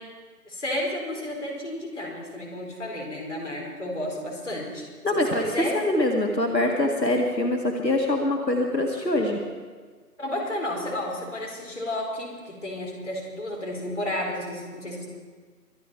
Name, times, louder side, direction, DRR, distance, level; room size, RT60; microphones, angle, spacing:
voice 1, 0.5-4.8 5.1-5.8 10.2-15.1, left 1 dB, 45° left, -1 dB, 4.5 m, -32 dB
voice 2, 5.0-9.4, left 1 dB, 90° left, 2 dB, 2.1 m, -24 dB
24.5 x 10.0 x 4.6 m, 1.5 s
figure-of-eight pair, 165°, 49 cm